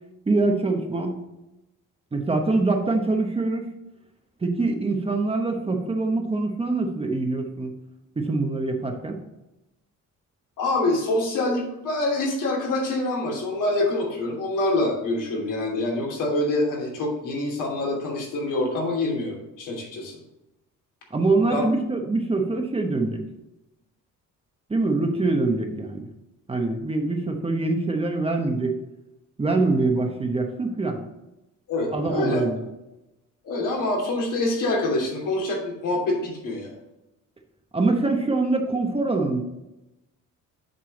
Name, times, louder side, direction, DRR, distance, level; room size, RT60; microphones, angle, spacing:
voice 1, 0.3-1.2 2.1-3.7 4.4-7.7 8.2-9.2 21.1-23.2 24.7-26.1 26.5-28.8 29.4-31.0 31.9-32.6 37.7-39.4, right 3 dB, 20° right, 3 dB, 1.0 m, -24 dB
voice 2, 10.6-20.2 21.4-21.6 31.7-32.5 33.4-36.7, left 2 dB, 75° left, -2 dB, 2.9 m, -26 dB
7.8 x 5.5 x 4.1 m, 0.96 s
cardioid pair, 130°, 32 cm